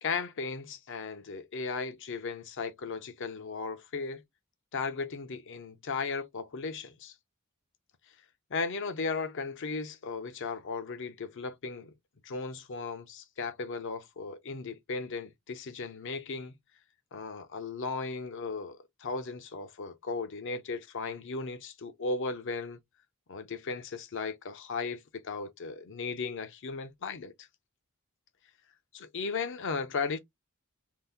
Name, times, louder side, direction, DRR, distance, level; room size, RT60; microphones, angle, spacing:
voice 1, 0.0-4.2 4.7-7.1 8.5-11.9 12.2-16.6 17.1-22.8 23.3-27.5 28.9-30.2, left 4 dB, 60° left, 0.6 m, -36 dB
2.7 x 2.0 x 3.4 m
head